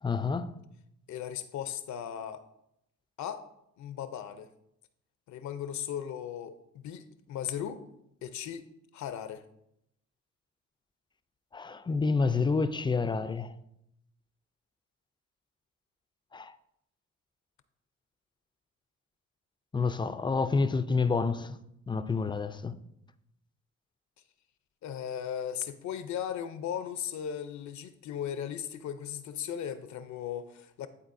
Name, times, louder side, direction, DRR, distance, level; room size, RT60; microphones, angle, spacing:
voice 1, 0.0-0.5 11.5-13.5 16.3-16.5 19.7-21.6 21.9-22.8, left 4 dB, 15° left, 0.3 m, -28 dB
voice 2, 1.1-2.4 3.2-3.5 3.8-4.5 5.3-6.6 6.8-7.8 8.2-8.6 8.9-9.4 24.8-30.9, left 9 dB, 70° left, 0.6 m, -37 dB
11.0 x 4.0 x 2.6 m
cardioid pair, 90°, 30 cm